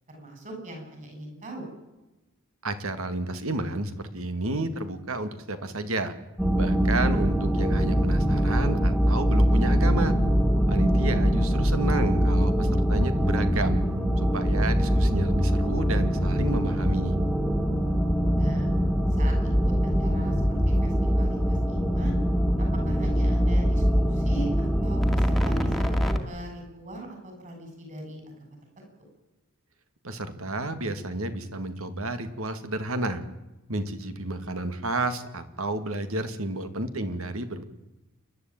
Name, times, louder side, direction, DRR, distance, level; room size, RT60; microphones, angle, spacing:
voice 1, 0.1-1.7 11.3-11.4 18.3-18.7 19.1-19.7 20.0-22.2 22.6-28.6, right 1 dB, 35° right, 3 dB, 8.0 m, -40 dB
voice 2, 2.6-6.1 6.6-10.1 10.7-13.8 14.2-17.2 30.0-33.2 33.7-37.6, right 2 dB, 70° right, 10 dB, 2.3 m, -31 dB
sound 1, 6.4-26.2, equal, ahead, 2.0 m, -23 dB
28.5 x 12.0 x 9.0 m, 1.0 s
head